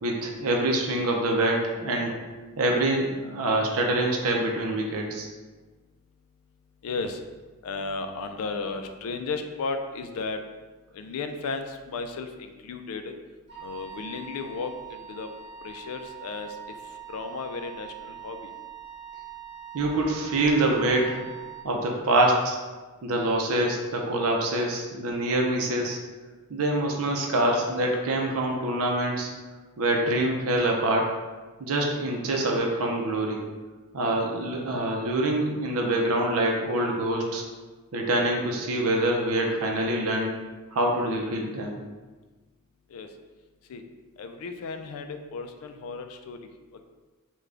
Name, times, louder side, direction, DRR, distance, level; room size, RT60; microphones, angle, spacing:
voice 1, 0.0-2.2 2.6-5.3 19.7-21.2 21.6-22.6 23.0-26.0 26.5-29.3 29.8-31.1 31.6-33.4 33.9-37.4 37.9-40.3 40.7-41.8, right 1 dB, 65° right, 0 dB, 0.5 m, -25 dB
voice 2, 6.8-7.2 7.6-10.4 10.9-13.1 13.6-15.3 15.6-16.6 17.1-18.5 42.9-43.1 43.7-43.8 44.2-46.4, left 4 dB, 70° left, 7 dB, 0.4 m, -34 dB
Wind instrument woodwind instrument, 13.5-21.7, right 8 dB, 50° right, 1.0 m, -43 dB
3.7 x 2.3 x 3.3 m, 1.3 s
head